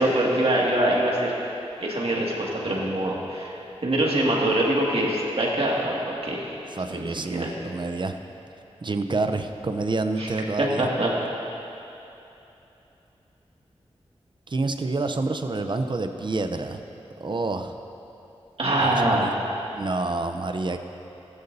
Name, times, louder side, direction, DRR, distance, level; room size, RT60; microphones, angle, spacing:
voice 1, 0.0-1.3 1.8-3.5 3.8-6.4 6.9-7.5 10.2-10.3 10.6-11.1 18.6-19.3, right 1 dB, 60° right, -3 dB, 2.1 m, -24 dB
voice 2, 6.8-8.2 8.8-10.9 14.5-16.8 17.2-17.8 18.8-19.3 19.7-20.8, right 3 dB, 45° right, 7 dB, 0.7 m, -28 dB
15.0 x 12.0 x 2.7 m, 2.9 s
cardioid pair, 50°, 11 cm